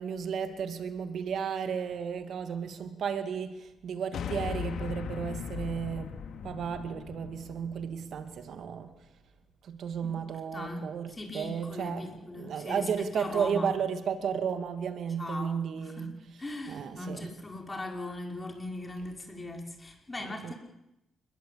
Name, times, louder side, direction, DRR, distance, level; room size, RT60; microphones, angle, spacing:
voice 1, 0.0-6.1 6.4-8.9 9.6-12.1 12.4-16.1 16.7-17.3 20.2-20.5, right 7 dB, 65° right, 8 dB, 2.4 m, -33 dB
sound 1, 4.1-8.6, left 7 dB, 70° left, 2.5 m, -38 dB
voice 2, 10.0-13.7 15.2-20.5, left 1 dB, 20° left, 3 dB, 5.4 m, -39 dB
28.0 x 21.5 x 8.7 m, 0.87 s
cardioid pair, 110°, 0 cm